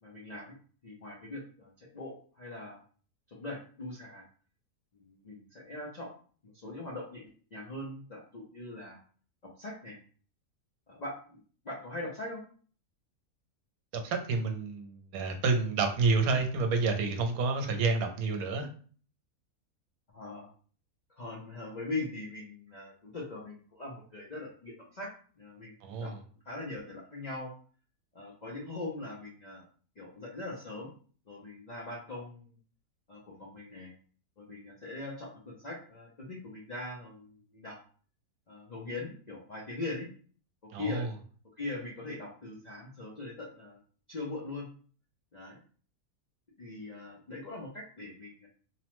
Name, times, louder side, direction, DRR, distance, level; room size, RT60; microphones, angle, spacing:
voice 1, 0.0-0.6 0.8-2.8 3.3-4.3 4.9-6.1 6.4-9.0 9.6-10.0 10.9-12.4 20.1-20.5 21.1-25.1 25.4-26.1 26.4-27.5 28.1-29.7 30.0-30.9 31.3-32.6 33.1-33.9 34.4-37.8 38.5-40.1 40.6-41.1 41.6-43.8 44.1-44.7 45.3-45.6 46.6-48.5, left 2 dB, 60° left, -4 dB, 0.4 m, -41 dB
voice 2, 13.9-18.7 25.8-26.2 40.7-41.1, right 4 dB, 80° right, 5 dB, 1.0 m, -29 dB
2.8 x 2.1 x 2.9 m, 0.43 s
omnidirectional pair, 1.6 m